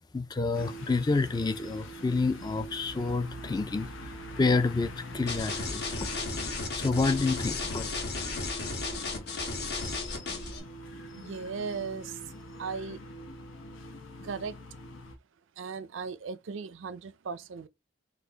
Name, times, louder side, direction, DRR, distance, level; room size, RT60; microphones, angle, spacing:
voice 1, 0.1-6.1 6.8-7.9, left 3 dB, 20° left, 0.3 m, -29 dB
sound 1, 0.5-15.2, equal, 90° left, 0.8 m, -44 dB
sound 2, 5.3-10.6, left 3 dB, 55° left, 1.2 m, -34 dB
voice 2, 11.1-12.2 12.6-13.0 14.2-14.6 15.6-17.7, right 5 dB, 80° right, 0.5 m, -37 dB
4.4 x 2.4 x 3.9 m
head